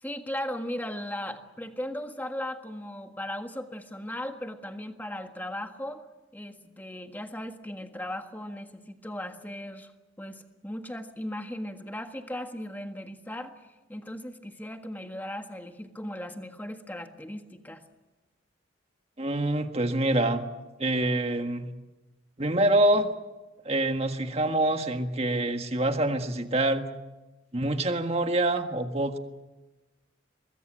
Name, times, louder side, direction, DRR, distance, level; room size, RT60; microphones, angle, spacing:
voice 1, 0.0-6.0 6.3-9.9 10.2-13.5 13.9-17.8, left 1 dB, 10° left, 5 dB, 1.6 m, -37 dB
voice 2, 19.2-20.4 20.8-21.7 22.4-23.1 23.6-26.8 27.5-29.2, right 1 dB, 30° right, 6 dB, 1.6 m, -26 dB
24.0 x 20.5 x 7.8 m, 1.1 s
head